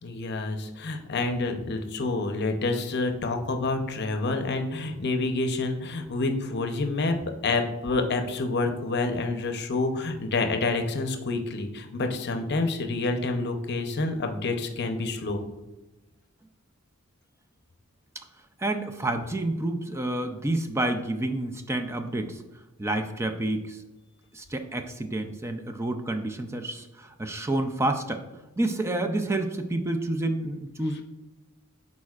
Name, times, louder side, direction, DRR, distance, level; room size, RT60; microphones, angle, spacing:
voice 1, 0.0-7.2 7.4-15.4, left 3 dB, 55° left, 6 dB, 0.7 m, -28 dB
voice 2, 18.6-22.4 22.8-23.8 24.3-28.2 28.6-31.0, right 2 dB, 15° right, 5 dB, 0.4 m, -29 dB
11.0 x 4.2 x 2.4 m, 1.1 s
head